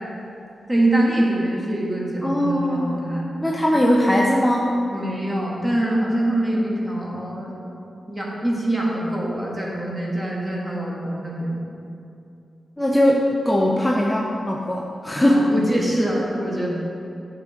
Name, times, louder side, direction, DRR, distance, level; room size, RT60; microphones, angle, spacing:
voice 1, 0.7-3.3 4.9-7.5 8.1-11.6 15.2-16.7, right 1 dB, 20° right, -4 dB, 2.1 m, -24 dB
voice 2, 2.2-3.0 3.4-4.8 12.8-15.4, left 1 dB, 10° left, -2 dB, 0.8 m, -20 dB
9.4 x 6.9 x 3.7 m, 2.6 s
cardioid pair, 70°, 0 cm